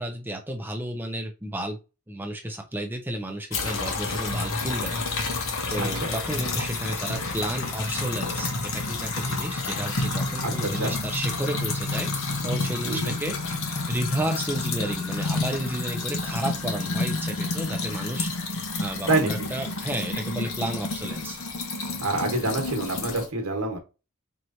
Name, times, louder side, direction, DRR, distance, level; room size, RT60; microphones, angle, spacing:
voice 1, 0.0-1.8 2.1-13.4 13.9-21.4, right 1 dB, 10° right, 3 dB, 0.7 m, -32 dB
sound 1, 3.5-23.3, left 3 dB, 65° left, 1.0 m, -29 dB
voice 2, 5.8-6.1 10.4-11.0 12.9-13.2 19.1-19.5 22.0-23.8, right 2 dB, 90° right, 4 dB, 1.3 m, -27 dB
4.5 x 3.1 x 2.7 m, 0.29 s
head